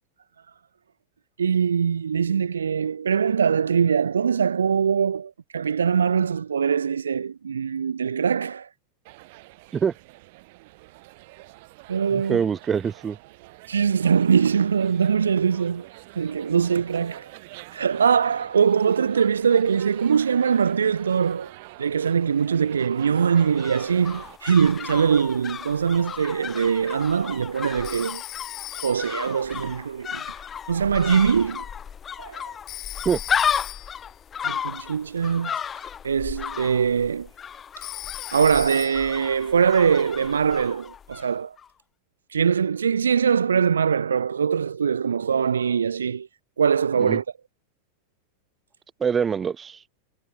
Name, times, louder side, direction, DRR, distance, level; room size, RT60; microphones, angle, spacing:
voice 1, 1.4-8.7 11.9-12.4 13.7-15.9 16.2-17.3 17.7-21.5 21.8-28.2 28.8-30.2 30.7-31.6 32.2-32.5 34.4-35.6 36.0-37.3 38.3-41.6 42.3-46.3 46.6-47.2, right 7 dB, 70° right, 0.3 m, -22 dB
sound 1, 9.1-24.4, right 23 dB, 50° right, 3.5 m, -46 dB
voice 2, 12.1-13.2 33.0-33.2 47.0-47.2 49.0-49.8, right 7 dB, 20° right, 1.5 m, -24 dB
sound 2, 23.1-41.3 41.6-41.7, left 8 dB, 20° left, 0.6 m, -33 dB
Telephone, 27.8-29.3 32.7-34.1 37.8-39.2, left 18 dB, 40° left, 1.6 m, -37 dB
figure-of-eight pair, 90°, 0 cm